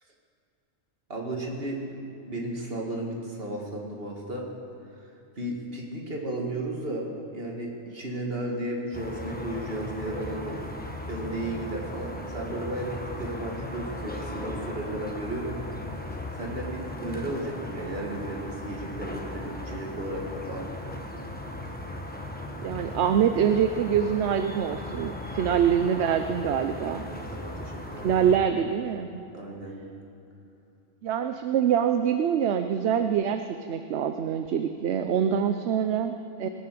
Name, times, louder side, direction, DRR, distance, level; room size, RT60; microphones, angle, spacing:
voice 1, 1.1-1.8 2.3-4.5 5.4-7.1 7.3-10.7 11.1-15.6 15.9-16.0 16.3-20.7 27.0-28.2 29.3-29.8, right 1 dB, 55° right, 0 dB, 2.3 m, -34 dB
sound 1, 8.9-28.4, left 1 dB, 10° left, 1.2 m, -37 dB
voice 2, 22.6-27.1 28.0-29.2 31.0-36.5, right 8 dB, 70° right, 8 dB, 0.9 m, -25 dB
20.0 x 9.4 x 6.8 m, 2.7 s
omnidirectional pair, 1.2 m